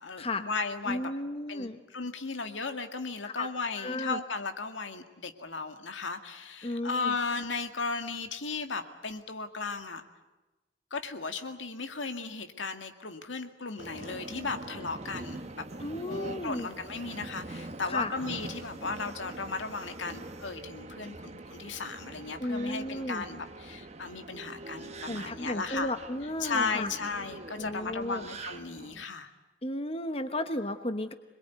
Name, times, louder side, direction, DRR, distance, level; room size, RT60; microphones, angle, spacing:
voice 1, 0.0-1.1 1.5-10.0 10.9-15.7 16.0-25.9 26.4-29.3, left 4 dB, 80° left, 7 dB, 2.1 m, -36 dB
voice 2, 0.9-1.8 3.2-3.5 3.8-4.2 6.6-7.1 15.8-16.7 17.9-18.1 22.4-23.2 25.1-26.9 27.5-28.2 29.6-31.1, left 1 dB, 30° left, 8 dB, 1.2 m, -34 dB
Subway metro underground, 13.8-29.0, right 2 dB, 35° right, 1.3 m, -44 dB
26.5 x 21.5 x 9.5 m, 1.1 s
head